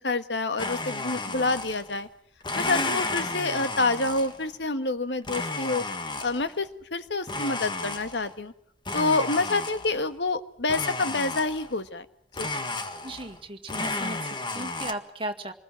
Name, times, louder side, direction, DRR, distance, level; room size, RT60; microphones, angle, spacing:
voice 1, 0.0-2.1 2.6-5.8 6.2-8.5 8.9-12.1 12.4-12.5, left 3 dB, 85° left, 10 dB, 1.6 m, -27 dB
Domestic sounds home sounds, 0.6-2.0 2.4-4.5 5.2-6.6 7.3-8.4 8.9-10.1 10.7-11.8 12.3-13.4 13.7-14.9, left 3 dB, 25° left, 1.7 m, -32 dB
voice 2, 13.0-15.5, right 1 dB, 30° right, 6 dB, 2.0 m, -36 dB
26.5 x 21.0 x 7.7 m, 0.67 s
head